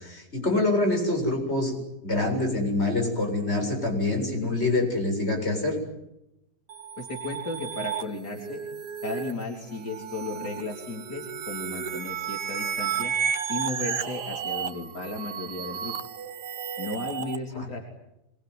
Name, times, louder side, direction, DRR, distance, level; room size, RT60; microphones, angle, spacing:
voice 1, 0.0-1.8 2.0-5.8 17.5-17.6, left 2 dB, 40° left, 1 dB, 7.8 m, -25 dB
sound 1, 6.7-17.4, right 7 dB, 80° right, 1.8 m, -33 dB
voice 2, 7.0-8.6 9.0-13.1 13.5-16.0 16.8-17.8, left 2 dB, 80° left, 1 dB, 4.2 m, -35 dB
26.0 x 22.5 x 9.6 m, 0.89 s
omnidirectional pair, 1.8 m